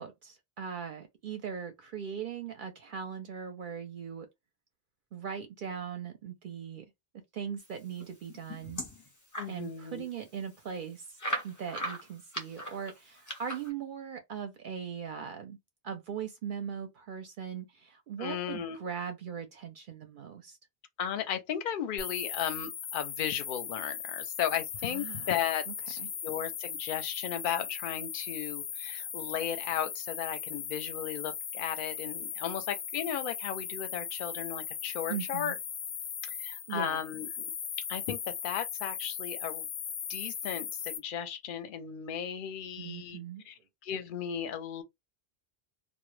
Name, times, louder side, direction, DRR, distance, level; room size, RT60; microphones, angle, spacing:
voice 1, 0.0-4.3 5.1-6.9 7.3-8.8 9.5-11.2 11.4-15.6 15.8-20.6 24.8-25.3 25.7-25.8 26.0-26.1 35.1-35.5 36.7-37.0 42.8-43.4, right 7 dB, 60° right, 0.6 m, -39 dB
sound 1, 8.0-9.6 10.0-10.1 10.4-10.5 11.2-13.7, equal, 20° left, 0.5 m, -38 dB
voice 2, 9.4-10.1 18.2-18.8 21.0-35.6 36.2-37.4 37.9-39.7 40.1-43.2 43.5-43.6 43.8-44.8, left 9 dB, 60° left, 0.6 m, -35 dB
sound 2, 22.0-41.0, left 8 dB, 90° left, 0.8 m, -38 dB
2.1 x 2.0 x 3.0 m
omnidirectional pair, 1.1 m